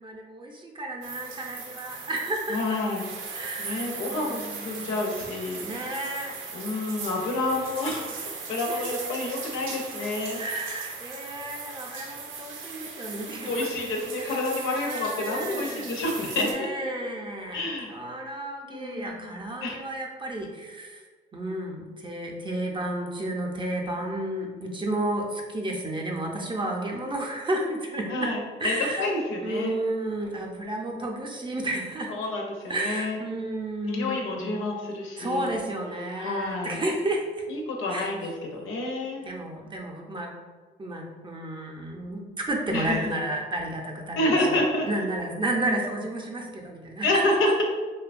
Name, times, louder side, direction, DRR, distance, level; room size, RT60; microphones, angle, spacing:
voice 1, 0.0-2.8 3.3-4.9 5.6-6.4 8.7-8.8 10.4-13.7 14.2-15.9 16.3-17.6 17.9-21.0 21.3-28.3 28.6-29.1 29.4-32.1 32.7-34.6 35.2-37.3 37.9-38.1 39.2-40.3 40.8-44.6 44.9-47.2, right 1 dB, 25° right, 0 dB, 0.5 m, -32 dB
sound 1, 1.0-16.5, right 4 dB, 80° right, 0.5 m, -38 dB
voice 2, 2.5-3.1 3.6-5.9 6.5-10.4 13.5-16.5 17.5-18.0 18.7-19.8 28.1-29.8 32.1-33.2 33.8-35.6 36.2-36.8 37.5-39.2 42.7-43.1 44.2-45.0 47.0-47.6, left 2 dB, 80° left, 1 dB, 0.6 m, -29 dB
2.8 x 2.2 x 2.4 m, 1.4 s
cardioid pair, 90°, 20 cm